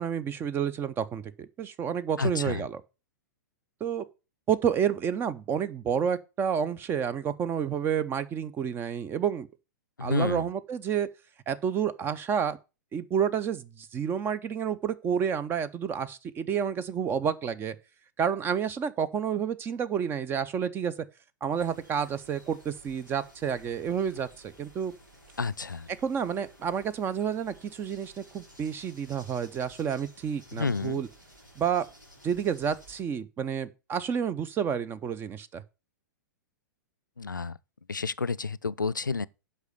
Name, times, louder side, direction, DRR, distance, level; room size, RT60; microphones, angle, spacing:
voice 1, 0.0-2.8 3.8-4.1 4.5-9.5 10.0-11.1 11.5-12.6 12.9-17.8 18.2-20.9 21.4-24.9 26.0-31.1 31.6-31.8 32.2-35.6, right 8 dB, 20° right, 0.7 m, -30 dB
voice 2, 2.2-2.6 10.0-10.5 25.4-25.9 30.5-31.0 37.2-37.6 37.9-39.3, left 4 dB, 85° left, 0.4 m, -30 dB
sound 1, 21.5-33.0, equal, 85° right, 3.2 m, -54 dB
8.2 x 5.6 x 6.6 m
figure-of-eight pair, 105°, 10 cm